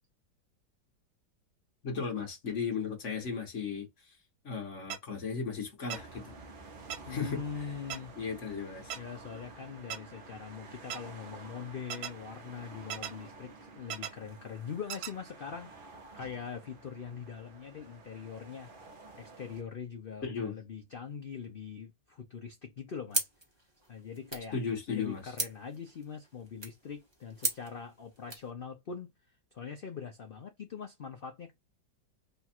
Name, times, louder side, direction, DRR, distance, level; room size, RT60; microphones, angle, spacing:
voice 1, 1.8-4.2 4.4-6.3 7.1-7.4 8.2-9.0 20.2-20.5 24.5-25.3, left 5 dB, 45° left, 1.4 m, -36 dB
sound 1, 4.9-5.0 5.9-6.0 6.9-7.0 7.9-8.0 8.9-9.0 9.9-10.0 10.9-11.0 11.9-12.1 12.9-13.1 13.9-14.1 14.9-15.1, right 9 dB, 85° right, 1.3 m, -36 dB
sound 2, 5.9-19.6, right 3 dB, 40° right, 0.8 m, -51 dB
voice 2, 7.1-8.1 9.0-18.7 19.2-23.3 23.9-24.6 24.9-31.5, left 6 dB, 80° left, 0.5 m, -42 dB
sound 3, 23.1-28.5, right 2 dB, 20° right, 1.0 m, -39 dB
3.4 x 2.4 x 4.2 m
omnidirectional pair, 1.9 m